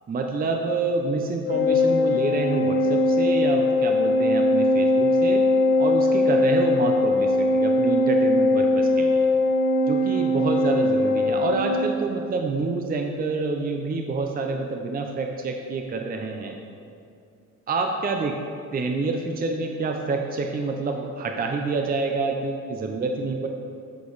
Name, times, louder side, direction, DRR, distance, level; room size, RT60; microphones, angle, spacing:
voice 1, 0.1-5.4 5.8-9.3 9.8-16.5 17.7-18.4 18.7-23.5, right 3 dB, 30° right, 3 dB, 0.6 m, -27 dB
Organ, 1.5-12.2, left 2 dB, 35° left, 0.6 m, -21 dB
8.2 x 5.0 x 4.0 m, 2.4 s
cardioid pair, 90°, 30 cm